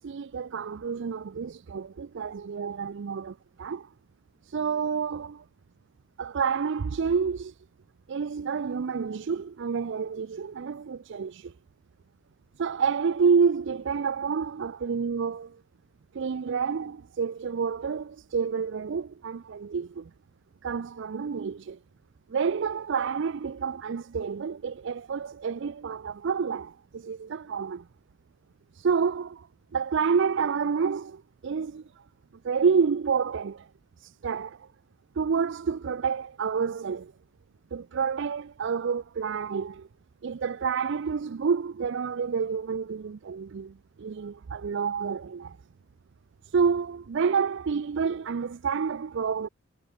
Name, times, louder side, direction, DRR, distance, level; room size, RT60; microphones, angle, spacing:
voice 1, 0.0-3.9 4.5-5.4 6.2-7.5 8.1-11.5 12.6-15.6 16.1-20.1 20.6-21.8 22.3-27.8 28.8-29.5 29.7-31.8 32.4-33.7 34.0-34.6 35.2-37.1 37.7-39.9 40.2-45.6 46.5-49.5, right 6 dB, 60° right, 0.4 m, -29 dB
head